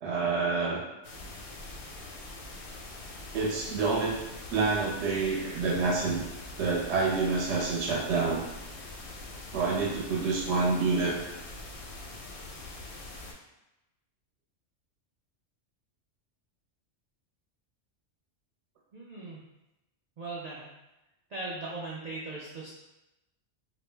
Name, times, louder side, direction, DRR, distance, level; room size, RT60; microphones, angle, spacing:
voice 1, 0.0-0.8 3.3-4.1 4.5-6.2 6.6-8.4 9.5-11.2, right 4 dB, 70° right, -3 dB, 0.8 m, -27 dB
sound 1, 1.0-13.3, left 2 dB, 85° left, 0.9 m, -43 dB
voice 2, 18.9-19.4 20.2-20.7 21.3-22.7, right 2 dB, 85° right, -5 dB, 0.3 m, -38 dB
2.4 x 2.0 x 3.2 m, 0.95 s
omnidirectional pair, 1.3 m